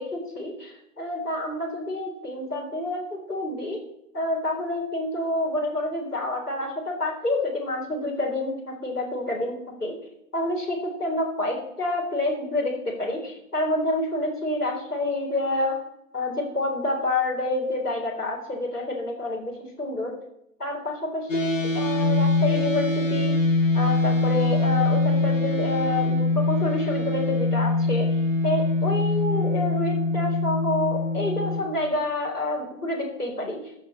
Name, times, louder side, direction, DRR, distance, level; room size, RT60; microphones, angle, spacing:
voice 1, 0.0-3.8 4.1-10.0 10.3-15.8 16.1-20.1 20.6-23.4 23.7-28.1 28.4-33.6, left 2 dB, 70° left, 0 dB, 3.9 m, -28 dB
sound 1, 21.3-31.6, left 2 dB, 50° left, 1.9 m, -23 dB
13.5 x 6.2 x 6.5 m, 0.80 s
figure-of-eight pair, 165°, 48 cm